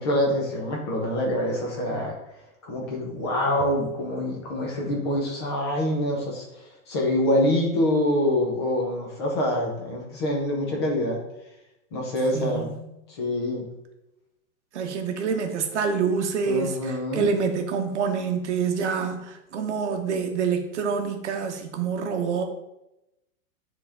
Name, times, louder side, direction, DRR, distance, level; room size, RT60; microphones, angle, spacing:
voice 1, 0.0-2.2 2.6-11.2 11.9-12.7 13.1-13.7 16.4-17.3, left 1 dB, 20° left, -1 dB, 0.7 m, -25 dB
voice 2, 12.3-12.7 14.7-22.4, right 5 dB, 50° right, 5 dB, 1.0 m, -27 dB
9.3 x 3.7 x 3.5 m, 0.90 s
hypercardioid pair, 175°, 44 cm